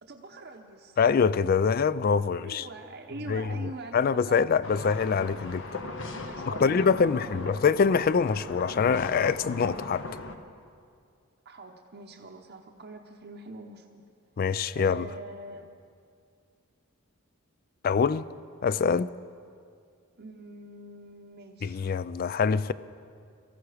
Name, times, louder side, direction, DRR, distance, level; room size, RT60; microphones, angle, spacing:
voice 1, 0.0-1.0 2.4-4.5 6.2-7.5 11.4-14.0 14.7-15.7 20.2-21.9, right 2 dB, 50° right, 0.8 m, -43 dB
voice 2, 1.0-2.7 3.3-5.8 6.5-10.1 14.4-15.1 17.8-18.3 18.6-19.1 21.6-22.7, left 6 dB, 40° left, 0.3 m, -25 dB
sound 1, 4.6-10.4, left 2 dB, 60° left, 1.0 m, -38 dB
18.0 x 14.5 x 4.9 m
head